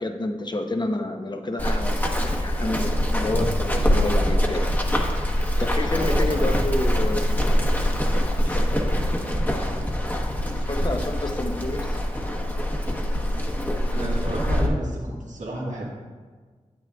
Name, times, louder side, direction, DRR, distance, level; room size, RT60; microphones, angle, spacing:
voice 1, 0.0-4.7 5.2-7.5 8.1-9.7 10.4-12.0, left 2 dB, 35° left, 5 dB, 0.8 m, -30 dB
Run, 1.6-14.7, equal, 15° left, 1.1 m, -24 dB
voice 2, 6.0-6.6 13.9-15.8, right 1 dB, 75° right, -4 dB, 1.7 m, -32 dB
8.6 x 8.6 x 2.4 m, 1.4 s
cardioid pair, 40°, 13 cm